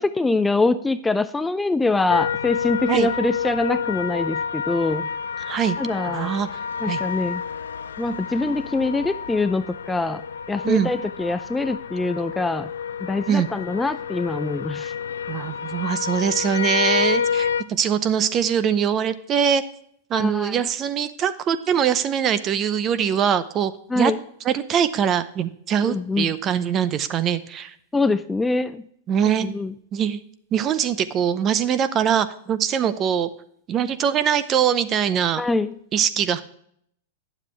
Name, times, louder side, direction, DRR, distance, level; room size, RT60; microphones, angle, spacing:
voice 1, 0.0-5.1 5.8-6.3 6.8-7.4 8.0-10.2 10.5-12.7 13.0-14.9 20.1-20.6 23.9-24.2 25.8-26.3 27.9-28.8 29.4-29.7 35.4-35.7, left 3 dB, 10° left, 11 dB, 0.4 m, -24 dB
sound 1, 2.1-17.6, left 7 dB, 90° left, 0.4 m, -29 dB
voice 2, 5.4-5.8 6.0-6.5 6.9-7.0 10.6-10.9 13.3-13.5 15.3-19.6 20.1-24.1 24.4-27.7 29.1-29.5 29.9-30.2 30.5-33.3 33.7-35.4 35.9-36.4, right 8 dB, 30° right, 13 dB, 0.6 m, -22 dB
9.8 x 7.3 x 3.2 m, 0.67 s
hypercardioid pair, 125°, 0 cm